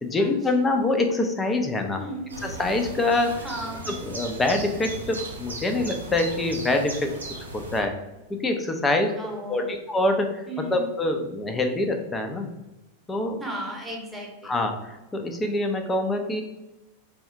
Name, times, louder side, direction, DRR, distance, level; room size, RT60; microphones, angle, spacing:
voice 1, 0.0-2.0 2.4-3.5 3.9-7.9 8.3-10.4 10.7-12.5 13.1-13.4 14.4-16.4, left 2 dB, 15° left, 5 dB, 0.6 m, -25 dB
voice 2, 2.0-2.3 3.4-3.9 9.2-9.8 10.5-10.9 13.4-14.5, right 1 dB, 5° right, -1 dB, 1.1 m, -35 dB
sound 1, 2.3-7.8, right 2 dB, 75° right, 0.7 m, -37 dB
3.4 x 2.4 x 4.4 m, 0.97 s
figure-of-eight pair, 90°, 0 cm